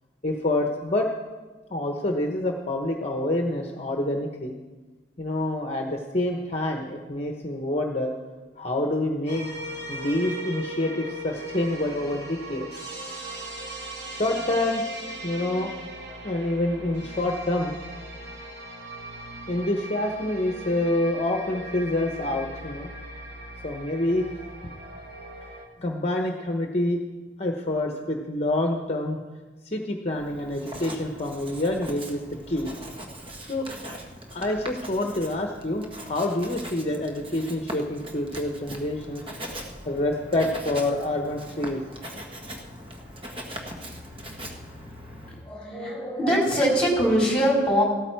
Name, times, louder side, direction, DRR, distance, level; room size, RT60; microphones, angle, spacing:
voice 1, 0.2-1.1 1.7-4.5 5.2-8.1 8.6-9.5 9.9-12.7 14.1-14.8 15.2-15.7 16.2-17.8 19.5-22.9 23.6-24.3 24.6-24.7 25.8-27.0 27.4-29.2 29.7-32.2 32.5-32.7 33.5-33.7 34.3-39.2 39.9-41.8, left 1 dB, 35° left, 2 dB, 1.0 m, -27 dB
sound 1, 9.3-25.7, right 1 dB, 70° right, 2.3 m, -39 dB
Writing, 30.1-45.5, equal, 30° right, 1.6 m, -40 dB
voice 2, 45.4-47.8, equal, 5° left, -4 dB, 4.7 m, -22 dB
16.0 x 13.0 x 4.6 m, 1.3 s
head